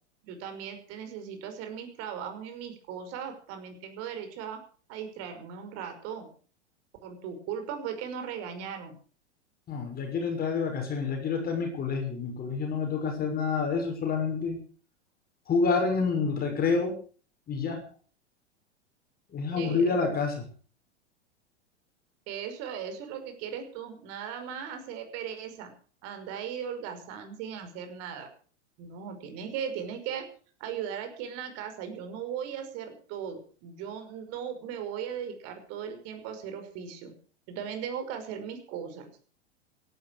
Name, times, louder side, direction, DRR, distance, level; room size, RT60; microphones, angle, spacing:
voice 1, 0.2-4.6 4.9-6.3 7.0-9.0 19.5-20.0 22.3-25.7 26.0-28.3 28.8-30.2 30.6-37.1 37.5-39.1, right 8 dB, 45° right, 7 dB, 5.6 m, -38 dB
voice 2, 9.7-14.6 15.5-16.9 17.5-17.8 19.3-20.5, left 4 dB, 25° left, 3 dB, 6.2 m, -28 dB
17.5 x 12.5 x 6.3 m, 0.42 s
hypercardioid pair, 100°, 34 cm